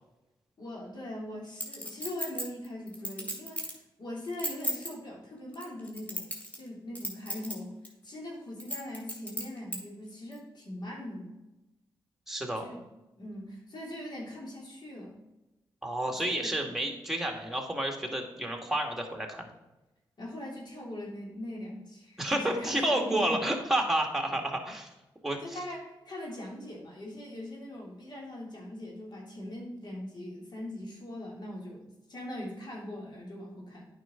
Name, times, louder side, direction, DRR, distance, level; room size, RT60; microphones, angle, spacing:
voice 1, 0.6-6.3 6.5-11.4 12.6-12.8 13.2-15.2 16.2-16.6 20.2-23.4 25.4-33.9, left 1 dB, 55° left, -2 dB, 2.9 m, -41 dB
Chink clink, 1.6-3.8 4.2-4.9 5.5-6.7 6.9-7.5 7.8-7.9 8.6-9.8 10.3-10.4, equal, 15° left, 2.7 m, -34 dB
voice 2, 12.3-12.7 15.8-19.5 22.2-24.9 25.2-25.6, right 1 dB, 5° right, 2 dB, 1.9 m, -30 dB
9.0 x 5.6 x 3.8 m, 1.0 s
supercardioid pair, 45°, 9 cm